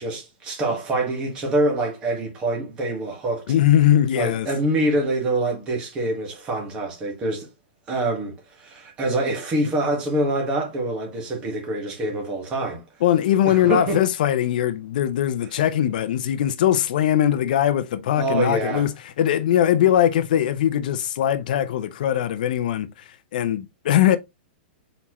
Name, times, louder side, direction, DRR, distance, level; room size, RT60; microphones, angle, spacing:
voice 1, 0.0-3.4 4.1-7.5 7.9-12.8 13.4-14.0 18.2-18.8, right 2 dB, 15° right, 1.4 m, -25 dB
voice 2, 3.5-4.5 13.0-24.2, left 11 dB, 50° left, 0.4 m, -21 dB
4.2 x 4.1 x 2.9 m
supercardioid pair, 175°, 6 cm